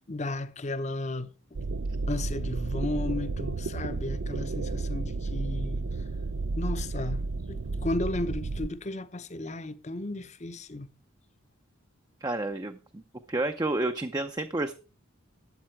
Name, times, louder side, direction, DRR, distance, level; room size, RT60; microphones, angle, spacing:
voice 1, 0.0-1.3 2.1-5.8 6.6-10.9, left 2 dB, 35° left, 0.8 m, -34 dB
sound 1, 1.5-8.7, right 3 dB, 70° right, 0.5 m, -32 dB
voice 2, 12.2-13.0 13.3-14.7, right 2 dB, 20° right, 0.6 m, -30 dB
12.0 x 8.6 x 4.6 m
head